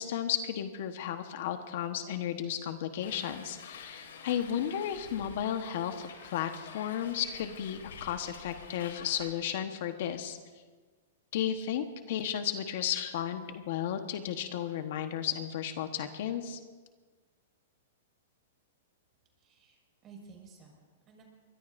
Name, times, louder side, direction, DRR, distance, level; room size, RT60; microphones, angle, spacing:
voice 1, 0.0-10.4 11.3-16.6, left 9 dB, 60° left, 7 dB, 1.2 m, -34 dB
Hiss, 3.0-9.3, left 6 dB, 90° left, 2.9 m, -48 dB
voice 2, 19.4-21.2, right 4 dB, 25° right, 0 dB, 5.4 m, -54 dB
23.5 x 21.5 x 2.6 m, 1.4 s
hypercardioid pair, 150°, 0 cm